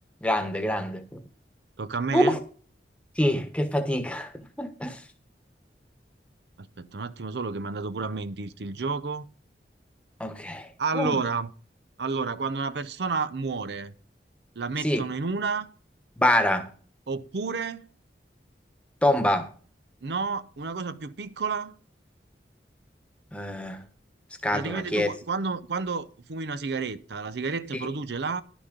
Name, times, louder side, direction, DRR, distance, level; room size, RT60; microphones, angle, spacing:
voice 1, 0.2-1.0 2.1-2.4 3.2-4.3 4.6-5.0 10.2-10.7 10.9-11.2 14.8-15.0 16.2-16.7 19.0-19.5 23.3-23.8 24.4-25.1, left 1 dB, 5° left, 1.2 m, -25 dB
voice 2, 1.8-2.4 6.6-9.3 10.8-11.5 12.0-13.9 14.6-15.7 17.1-17.9 20.0-21.7 24.5-28.4, right 4 dB, 75° right, 0.6 m, -30 dB
11.5 x 6.1 x 5.2 m
head